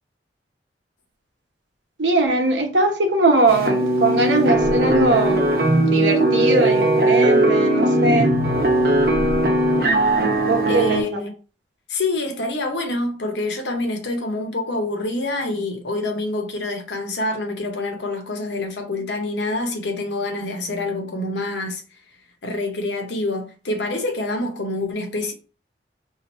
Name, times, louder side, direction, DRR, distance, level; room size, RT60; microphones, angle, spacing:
voice 1, 2.0-5.5 5.8-8.3 10.3-11.0, right 2 dB, 85° right, 0.8 m, -20 dB
sound 1, 3.5-11.0, right 1 dB, 55° right, 0.8 m, -18 dB
voice 2, 10.7-11.3 11.9-21.8 22.4-25.3, left 2 dB, 75° left, 0.8 m, -26 dB
2.8 x 2.5 x 4.2 m
head